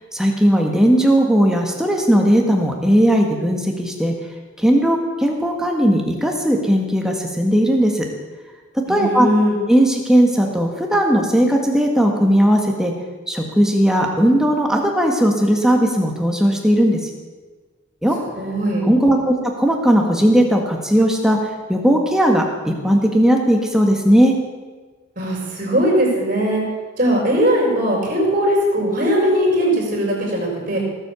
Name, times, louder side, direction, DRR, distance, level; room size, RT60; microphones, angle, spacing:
voice 1, 0.1-4.1 4.6-8.1 8.9-9.3 9.7-12.9 13.3-17.0 18.0-18.2 18.8-21.4 21.7-24.3, equal, 5° right, 1 dB, 1.7 m, -17 dB
voice 2, 8.9-9.6 18.4-18.8 25.2-26.6 27.0-30.8, equal, 40° right, -2 dB, 5.6 m, -19 dB
18.0 x 8.0 x 7.0 m, 1.4 s
head